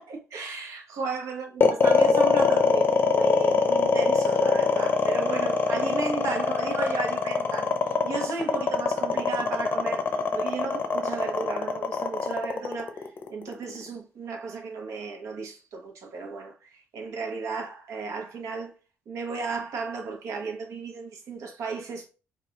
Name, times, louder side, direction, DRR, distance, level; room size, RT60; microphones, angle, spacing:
voice 1, 0.0-18.7 19.1-22.1, right 4 dB, 80° right, 1.0 m, -34 dB
sound 1, 1.6-13.9, left 5 dB, 45° left, 0.6 m, -23 dB
4.6 x 2.5 x 3.0 m
cardioid pair, 145°, 5 cm